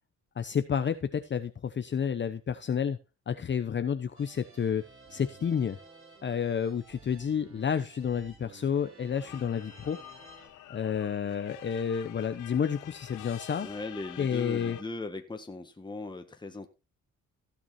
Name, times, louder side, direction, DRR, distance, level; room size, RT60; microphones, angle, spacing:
voice 1, 0.4-3.0 3.3-4.8 5.1-5.8 6.2-10.0 10.7-13.7 14.2-14.8, left 7 dB, 40° left, 10 dB, 0.8 m, -30 dB
sound 1, 4.2-10.5, right 4 dB, 45° right, 5.8 m, -54 dB
sound 2, 9.1-14.8, left 13 dB, 85° left, 1.0 m, -48 dB
voice 2, 13.6-16.7, left 3 dB, 15° left, 6 dB, 1.7 m, -39 dB
16.0 x 6.0 x 4.3 m, 0.29 s
cardioid pair, 90°, 30 cm